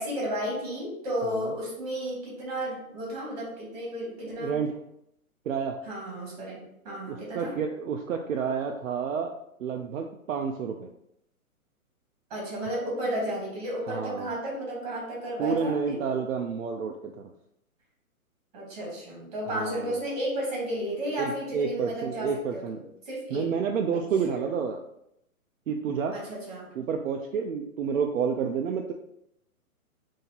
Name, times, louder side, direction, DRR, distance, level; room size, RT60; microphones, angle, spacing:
voice 1, 0.0-4.6 5.9-7.6 12.3-16.0 18.5-22.8 23.0-23.5 26.1-26.7, right 1 dB, 25° right, -4 dB, 1.6 m, -33 dB
voice 2, 1.2-1.5 4.4-4.7 5.5-5.8 7.1-9.3 9.6-10.9 13.9-14.3 15.4-17.3 19.5-20.0 21.2-22.8 23.3-24.8 25.7-26.1 26.8-28.9, right 6 dB, 65° right, 3 dB, 0.5 m, -30 dB
5.4 x 2.8 x 2.8 m, 0.79 s
hypercardioid pair, 170°, 43 cm